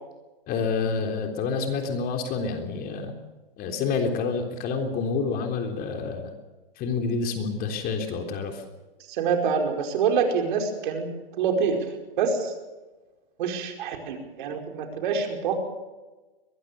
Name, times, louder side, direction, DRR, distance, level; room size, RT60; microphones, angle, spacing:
voice 1, 0.5-3.1 3.6-6.3 6.8-8.6, left 4 dB, 30° left, 4 dB, 3.6 m, -28 dB
voice 2, 9.1-11.1 11.4-11.9 12.2-12.5 13.4-15.6, right 5 dB, 55° right, 4 dB, 5.1 m, -26 dB
23.0 x 20.0 x 6.7 m, 1.2 s
hypercardioid pair, 125°, 29 cm